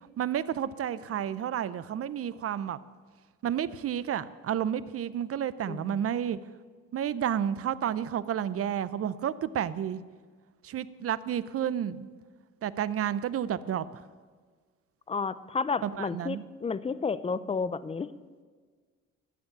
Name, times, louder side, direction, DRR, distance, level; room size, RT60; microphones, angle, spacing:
voice 1, 0.2-2.8 3.4-6.4 6.9-10.0 10.6-12.1 12.6-13.8 15.8-16.4, right 9 dB, 50° right, 17 dB, 0.6 m, -31 dB
voice 2, 5.7-6.0 15.1-18.1, left 5 dB, 20° left, 16 dB, 0.5 m, -31 dB
13.0 x 7.2 x 8.8 m, 1.5 s
cardioid pair, 90°, 30 cm